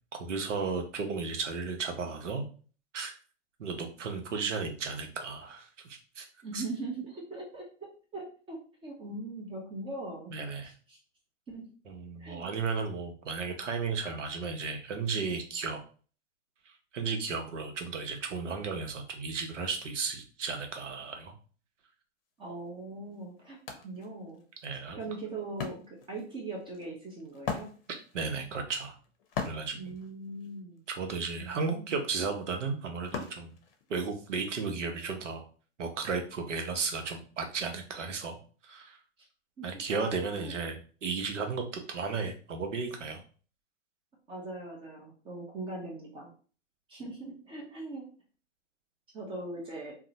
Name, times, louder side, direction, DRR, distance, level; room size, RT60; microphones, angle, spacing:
voice 1, 0.1-2.5 2.9-3.2 3.6-6.3 6.5-6.6 10.3-10.7 11.9-15.8 16.9-21.3 24.6-25.0 27.9-29.0 29.4-29.9 30.9-33.5 33.9-35.5 35.8-39.0 39.6-43.2, right 4 dB, 80° right, 4 dB, 0.7 m, -34 dB
voice 2, 6.4-10.3 10.6-11.0 11.5-11.6 12.2-12.5 22.4-23.6 23.8-24.4 25.0-27.7 29.7-30.9 31.4-31.9 39.6-39.7 40.3-40.5 44.3-46.3 46.9-48.0 49.1-50.0, right 2 dB, 15° right, -1 dB, 0.5 m, -40 dB
Wood, 22.6-22.7 23.1-34.3, left 6 dB, 50° left, 0.7 m, -42 dB
2.7 x 2.1 x 2.6 m, 0.40 s
hypercardioid pair, 115°, 36 cm